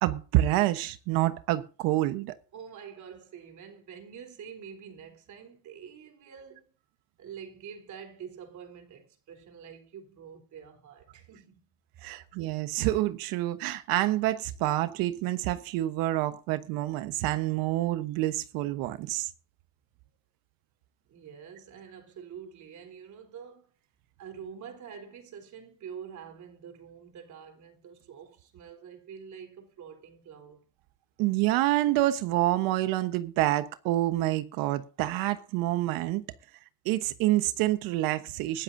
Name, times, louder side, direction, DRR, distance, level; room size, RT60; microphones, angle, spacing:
voice 1, 0.0-2.3 12.0-19.3 31.2-36.2 36.8-38.6, right 15 dB, 85° right, 1.2 m, -27 dB
voice 2, 2.5-6.7 7.2-11.6 12.0-12.3 21.1-23.7 24.2-30.6, right 7 dB, 55° right, 3.8 m, -46 dB
20.5 x 12.5 x 2.7 m
supercardioid pair, 95°, 34 cm